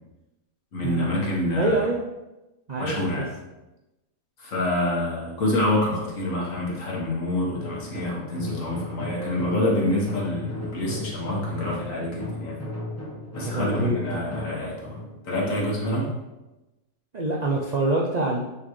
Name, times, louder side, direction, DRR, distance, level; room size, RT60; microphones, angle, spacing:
voice 1, 0.7-1.8 2.8-3.3 4.4-12.6 13.3-15.0 15.2-16.1, left 1 dB, 60° left, -3 dB, 1.8 m, -27 dB
voice 2, 1.6-2.0 2.7-3.3 13.4-14.2 17.1-18.5, right 2 dB, 50° right, -2 dB, 0.5 m, -25 dB
sound 1, 7.5-16.3, left 1 dB, 10° left, 1.0 m, -36 dB
9.3 x 4.1 x 3.2 m, 1.0 s
omnidirectional pair, 1.5 m